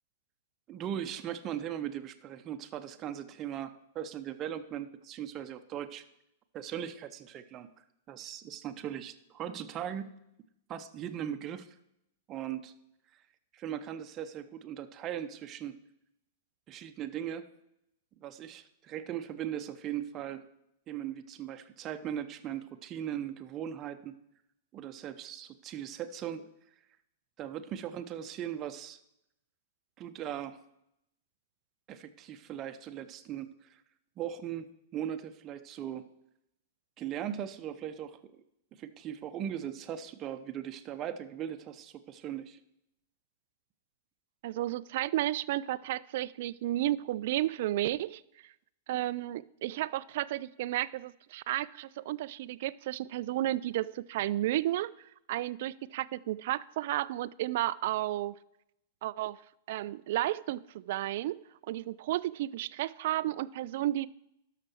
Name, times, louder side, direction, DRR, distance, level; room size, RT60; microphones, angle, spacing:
voice 1, 0.7-6.0 6.5-7.7 8.1-10.1 10.7-11.7 12.3-12.7 13.5-15.7 16.7-17.5 18.2-20.4 20.9-24.2 24.7-26.5 27.4-29.0 30.0-30.6 31.9-33.8 34.2-34.6 34.9-36.1 37.0-38.4 38.8-42.6, right 10 dB, 35° right, 8 dB, 0.8 m, -39 dB
voice 2, 44.4-48.5 48.9-54.9 55.3-58.3 59.0-59.4 59.7-61.4 61.7-64.1, right 14 dB, 55° right, 19 dB, 0.3 m, -32 dB
12.5 x 5.9 x 4.5 m, 0.80 s
hypercardioid pair, 105°, 0 cm